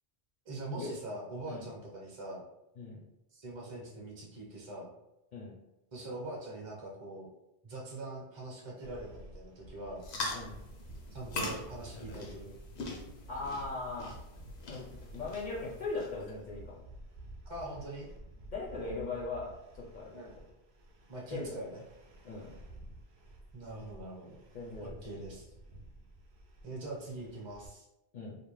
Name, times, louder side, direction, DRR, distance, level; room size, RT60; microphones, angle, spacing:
voice 1, 0.4-2.4 3.3-4.9 5.9-7.3 7.6-10.0 11.1-12.6 17.5-18.1 20.1-20.3 21.1-21.8 23.5-24.4 24.8-25.5 26.6-27.9, right 2 dB, 30° right, -3 dB, 0.6 m, -43 dB
sound 1, 8.8-27.7, right 1 dB, 75° right, 0.8 m, -52 dB
sound 2, 10.0-16.3, left 2 dB, 90° left, 0.9 m, -42 dB
voice 2, 13.3-14.1 14.7-14.9 15.1-16.8 18.5-20.1 21.3-21.6 22.2-22.5 24.5-25.0 28.1-28.4, left 3 dB, 55° left, -4 dB, 0.5 m, -39 dB
2.5 x 2.1 x 3.1 m, 0.90 s
omnidirectional pair, 1.1 m